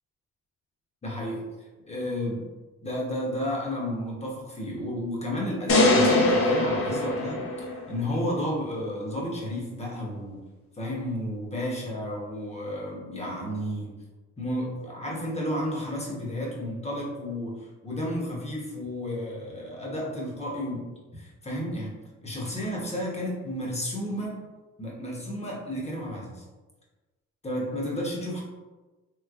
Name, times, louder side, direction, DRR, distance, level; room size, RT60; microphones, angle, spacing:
voice 1, 1.0-1.4 1.9-2.4 2.8-10.4 10.8-13.9 14.4-20.9 21.1-24.5 24.8-26.4 27.4-28.4, equal, 20° left, -3 dB, 0.9 m, -32 dB
sound 1, 5.7-8.0, left 2 dB, 45° left, 0.7 m, -22 dB
3.1 x 3.1 x 2.4 m, 1.2 s
cardioid pair, 90°, 30 cm